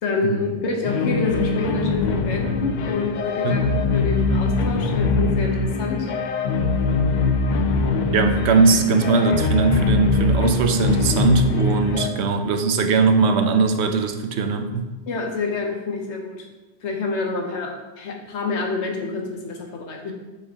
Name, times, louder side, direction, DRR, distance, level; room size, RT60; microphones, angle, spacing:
voice 1, 0.0-6.1 15.1-16.5 16.8-20.1, left 3 dB, 90° left, 2 dB, 1.2 m, -27 dB
sound 1, 0.8-12.1, left 3 dB, 55° left, 0.5 m, -22 dB
voice 2, 3.4-3.8 8.1-14.9, right 4 dB, 75° right, 6 dB, 0.9 m, -20 dB
6.9 x 4.8 x 2.8 m, 1.2 s
omnidirectional pair, 1.1 m